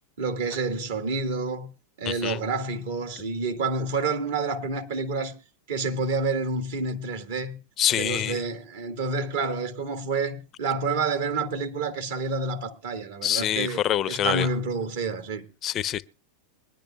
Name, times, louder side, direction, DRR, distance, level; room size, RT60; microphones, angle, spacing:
voice 1, 0.2-1.7 2.0-5.3 5.7-7.6 7.9-13.8 14.1-15.4, right 3 dB, 70° right, 1.7 m, -28 dB
voice 2, 2.1-2.4 7.8-8.4 13.2-14.5 15.6-16.0, left 11 dB, 35° left, 0.5 m, -25 dB
23.0 x 10.5 x 2.3 m
hypercardioid pair, 95°, 0 cm